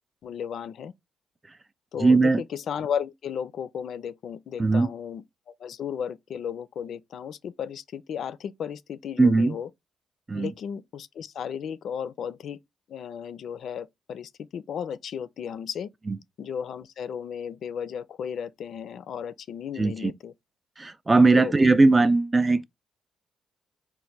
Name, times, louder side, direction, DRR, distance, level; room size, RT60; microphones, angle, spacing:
voice 1, 0.2-0.9 1.9-9.7 10.3-12.6 12.9-15.9 16.4-20.3 21.3-21.5, left 8 dB, 65° left, 0.4 m, -34 dB
voice 2, 2.0-2.4 4.6-4.9 9.2-9.5 10.3-10.5 16.1-16.2 19.8-20.1 20.8-22.6, right 3 dB, 20° right, 0.4 m, -19 dB
4.1 x 2.1 x 4.4 m
cardioid pair, 90°, 0 cm